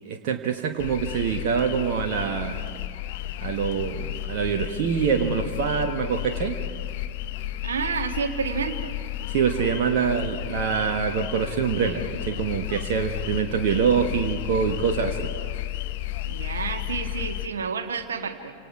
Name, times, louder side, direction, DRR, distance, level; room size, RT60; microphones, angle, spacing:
voice 1, 0.0-2.7 3.4-6.6 9.3-15.3, right 7 dB, 50° right, 4 dB, 1.3 m, -25 dB
sound 1, 0.8-17.5, left 13 dB, 50° left, 0.9 m, -33 dB
voice 2, 7.6-8.9 16.2-18.5, right 6 dB, 70° right, 6 dB, 1.7 m, -30 dB
29.5 x 26.5 x 4.7 m, 2.4 s
figure-of-eight pair, 90°, 0 cm